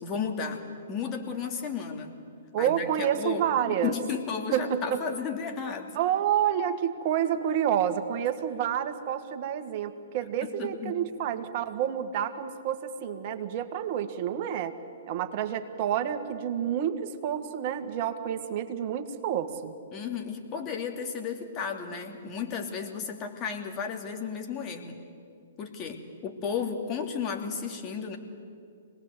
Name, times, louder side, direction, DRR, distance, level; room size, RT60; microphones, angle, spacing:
voice 1, 0.0-2.1 2.6-2.8 3.2-5.9 10.4-11.0 19.9-25.0 25.6-28.2, left 6 dB, 30° left, 3 dB, 2.8 m, -34 dB
voice 2, 2.5-3.9 4.5-5.0 6.0-14.7 15.1-19.7, right 9 dB, 45° right, 7 dB, 1.8 m, -29 dB
26.0 x 19.5 x 8.1 m, 2.4 s
hypercardioid pair, 125°, 0 cm